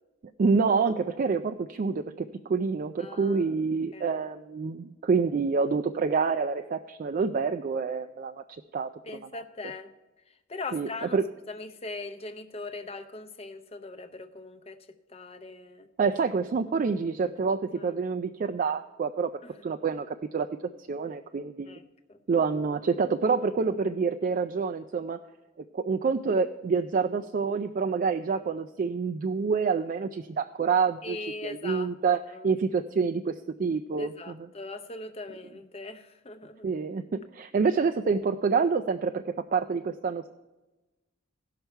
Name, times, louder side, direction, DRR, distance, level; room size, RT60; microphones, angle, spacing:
voice 1, 0.4-8.4 8.7-9.4 10.7-11.2 16.0-19.3 19.6-20.5 20.9-21.8 22.3-25.2 25.7-31.2 31.4-34.5 36.6-40.3, right 5 dB, 40° right, 6 dB, 0.3 m, -27 dB
voice 2, 3.0-3.5 3.9-4.2 9.0-9.9 10.5-11.2 11.5-14.8 15.1-15.9 17.8-18.0 19.4-19.5 21.7-21.8 22.1-22.2 31.0-31.9 32.3-32.5 34.0-36.7, left 3 dB, 30° left, 7 dB, 0.6 m, -40 dB
17.0 x 5.8 x 4.5 m, 1.1 s
head